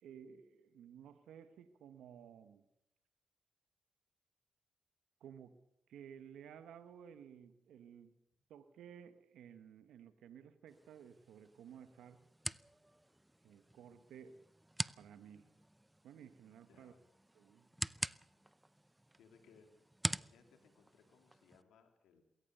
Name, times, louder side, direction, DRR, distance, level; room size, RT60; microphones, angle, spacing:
voice 1, 0.0-2.6 5.2-5.6 5.9-8.2 8.5-12.2 13.4-14.4 15.0-15.5 16.0-16.9 17.3-17.7, right 8 dB, 85° right, 11 dB, 1.3 m, -55 dB
sound 1, 10.7-21.6, right 1 dB, 10° right, 0.7 m, -46 dB
voice 2, 16.5-17.0 19.2-19.8 20.1-22.2, left 5 dB, 85° left, 6 dB, 3.2 m, -66 dB
21.5 x 18.0 x 6.9 m, 0.81 s
supercardioid pair, 50°, 0 cm